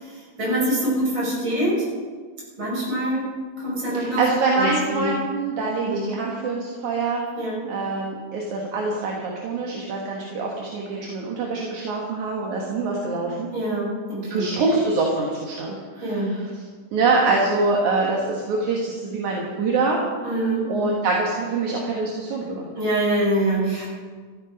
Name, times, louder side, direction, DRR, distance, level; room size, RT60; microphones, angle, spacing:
voice 1, 0.4-1.8 2.6-3.3 3.6-4.2 4.6-5.1 5.8-6.0 7.3-7.6 13.5-14.5 16.0-16.4 20.2-20.7 22.7-23.9, right 1 dB, 35° right, -5 dB, 6.5 m, -24 dB
voice 2, 3.9-7.2 7.7-13.5 14.3-16.5 16.9-20.0 20.7-22.7, right 3 dB, 70° right, -2 dB, 3.0 m, -24 dB
14.5 x 13.0 x 5.4 m, 1.5 s
omnidirectional pair, 3.6 m